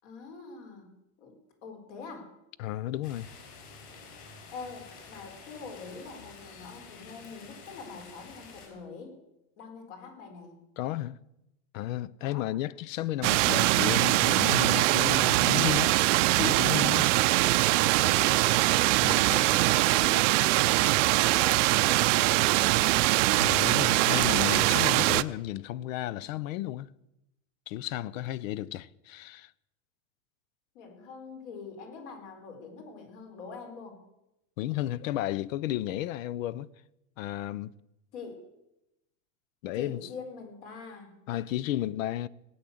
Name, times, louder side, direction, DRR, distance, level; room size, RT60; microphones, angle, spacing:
voice 1, 0.0-2.3 4.5-9.2 9.6-10.6 12.2-12.5 18.0-18.7 19.1-22.9 30.7-34.0 38.1-38.4 39.7-41.2, left 4 dB, 65° left, 4.3 m, -44 dB
voice 2, 2.6-3.3 10.8-11.2 11.7-16.0 16.3-17.1 19.0-19.2 23.4-26.9 27.7-29.5 34.6-36.7 37.2-37.7 39.6-40.1 41.3-42.3, left 14 dB, 85° left, 0.7 m, -33 dB
sound 1, 3.0-8.7, left 4 dB, 40° left, 4.8 m, -49 dB
sound 2, 13.2-25.2, right 19 dB, 70° right, 0.6 m, -23 dB
18.0 x 8.7 x 7.8 m
supercardioid pair, 175°, 38 cm